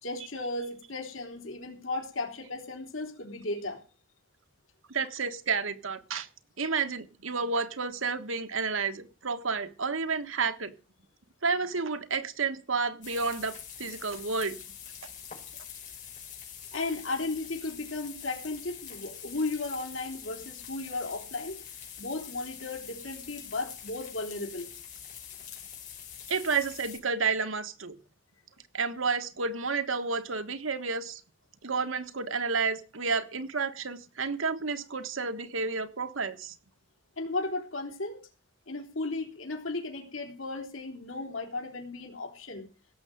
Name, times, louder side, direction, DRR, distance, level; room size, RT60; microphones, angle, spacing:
voice 1, 0.0-3.8 16.7-21.6 22.0-24.7 37.2-38.2 38.7-42.7, left 2 dB, 80° left, 1 dB, 3.7 m, -35 dB
voice 2, 4.9-6.3 6.6-10.7 11.4-14.6 26.3-28.0 28.7-31.2 31.6-36.5, right 4 dB, 80° right, 9 dB, 1.4 m, -31 dB
sound 1, 13.0-27.0, left 8 dB, 40° left, 5.4 m, -45 dB
17.0 x 6.9 x 7.8 m, 0.37 s
head